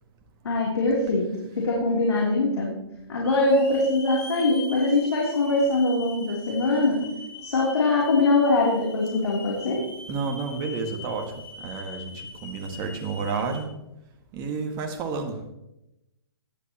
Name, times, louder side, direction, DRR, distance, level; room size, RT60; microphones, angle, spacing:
voice 1, 0.4-1.3 1.6-2.8 3.1-7.1 7.4-9.8, left 2 dB, 70° left, -3 dB, 3.3 m, -22 dB
Hiss / Alarm, 2.1-2.2 3.2-13.6, left 3 dB, 10° left, 4.8 m, -42 dB
voice 2, 10.1-11.3 11.6-13.7 14.3-15.4, right 4 dB, 25° right, 3 dB, 1.9 m, -30 dB
17.5 x 11.5 x 3.0 m, 0.90 s
hypercardioid pair, 140°, 14 cm